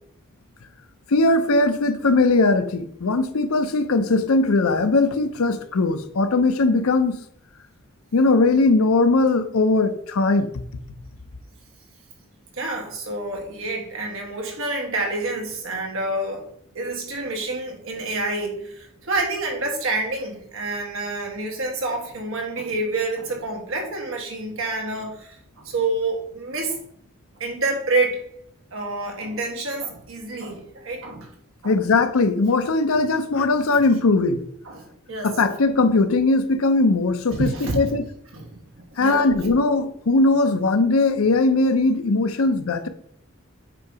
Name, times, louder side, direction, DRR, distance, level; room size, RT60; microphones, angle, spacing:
voice 1, 1.1-7.2 8.1-10.5 31.6-34.4 35.2-38.0 39.0-42.9, left 3 dB, 80° left, 10 dB, 0.6 m, -19 dB
voice 2, 12.5-16.4 16.7-26.8 27.4-28.2 28.7-31.3 31.6-31.8 34.6-35.4 37.3-37.9 38.3-38.5 38.8-39.3, right 2 dB, 70° right, 2 dB, 1.4 m, -28 dB
7.8 x 2.8 x 4.7 m, 0.68 s
head